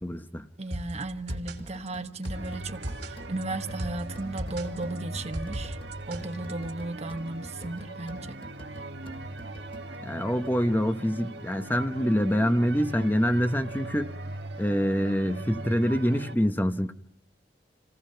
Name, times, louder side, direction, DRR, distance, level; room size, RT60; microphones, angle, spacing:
voice 1, 0.0-0.5 10.0-14.1 14.6-16.9, equal, 10° left, 0.9 m, -25 dB
voice 2, 0.6-5.8 6.1-8.4, right 2 dB, 40° right, 1.3 m, -35 dB
sound 1, 0.7-6.7, right 1 dB, 70° right, 3.1 m, -37 dB
sound 2, 1.3-10.2, equal, 35° left, 2.2 m, -48 dB
sound 3, 2.3-16.4, right 2 dB, 90° right, 1.5 m, -40 dB
28.5 x 18.5 x 5.7 m
head